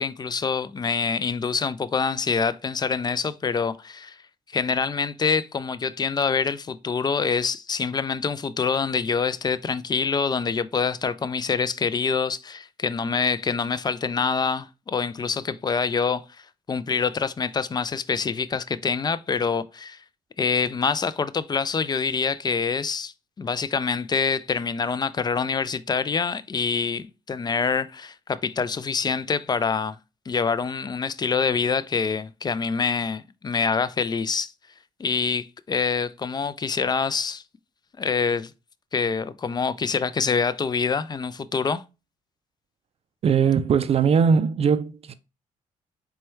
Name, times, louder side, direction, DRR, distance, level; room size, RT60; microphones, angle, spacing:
voice 1, 0.0-4.2 4.5-16.2 16.7-20.0 20.4-30.0 30.3-34.5 35.0-37.4 38.0-38.5 38.9-41.8, left 5 dB, 30° left, 0.4 m, -26 dB
voice 2, 43.2-45.1, right 6 dB, 45° right, 0.4 m, -20 dB
4.3 x 2.3 x 4.3 m
supercardioid pair, 65°, 14 cm